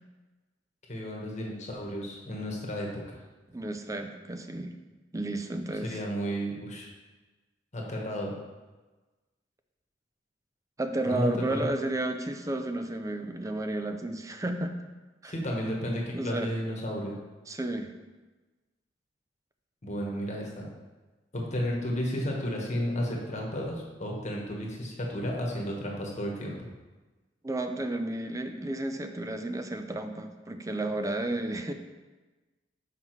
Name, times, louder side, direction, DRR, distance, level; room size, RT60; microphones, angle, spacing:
voice 1, 0.9-3.2 5.8-6.9 7.7-8.3 11.1-11.7 15.3-17.2 19.8-20.7 21.3-26.7, equal, 40° left, -1 dB, 1.3 m, -33 dB
voice 2, 3.5-4.7 5.1-6.0 10.8-14.7 15.2-15.3 16.1-16.5 17.5-17.9 27.4-31.7, right 1 dB, 20° right, 6 dB, 0.5 m, -32 dB
5.9 x 5.7 x 4.6 m, 1.2 s
head